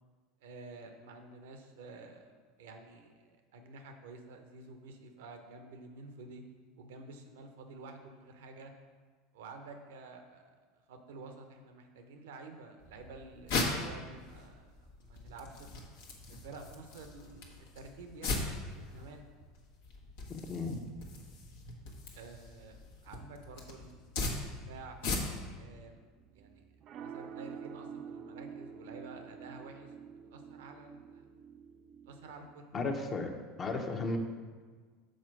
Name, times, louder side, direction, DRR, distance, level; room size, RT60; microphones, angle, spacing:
voice 1, 0.4-6.4 6.8-8.7 9.3-10.6 10.9-15.7 16.3-18.4 18.7-19.2 22.1-25.0 25.6-26.0 26.3-26.6 26.9-29.9 30.3-31.3 32.1-32.7, right 3 dB, 75° right, 5 dB, 0.8 m, -50 dB
sound 1, 12.8-25.6, left 3 dB, 70° left, 1.2 m, -39 dB
voice 2, 20.3-20.8 32.7-33.3 33.6-34.2, left 3 dB, 35° left, 4 dB, 0.9 m, -34 dB
sound 2, 26.2-32.5, right 7 dB, 45° right, 0.5 m, -48 dB
6.5 x 4.4 x 6.0 m, 1.5 s
hypercardioid pair, 80°, 0 cm